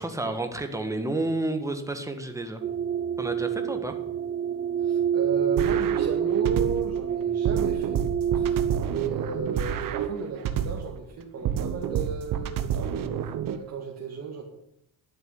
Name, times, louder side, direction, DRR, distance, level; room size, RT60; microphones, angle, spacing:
voice 1, 0.0-2.6 3.2-3.9, right 2 dB, 10° right, 6 dB, 1.7 m, -30 dB
sound 1, 2.6-9.0, right 8 dB, 30° right, 0.5 m, -27 dB
voice 2, 4.8-8.0 8.3-12.9 13.5-14.4, right 6 dB, 45° right, -2 dB, 2.3 m, -34 dB
sound 2, 5.6-7.0 7.5-11.0 11.5-13.6, right 8 dB, 65° right, 1.3 m, -29 dB
12.0 x 7.0 x 9.9 m, 0.82 s
cardioid pair, 125°, 36 cm